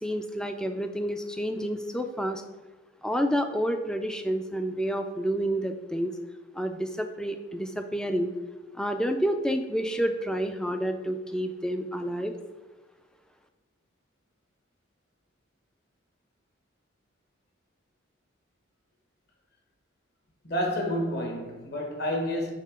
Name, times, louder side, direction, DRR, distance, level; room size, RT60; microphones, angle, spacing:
voice 1, 0.0-2.4 3.0-6.1 6.6-8.3 8.8-12.3, equal, 5° left, 0.3 m, -29 dB
voice 2, 20.4-22.5, equal, 50° left, 1.1 m, -29 dB
5.6 x 3.6 x 4.9 m
head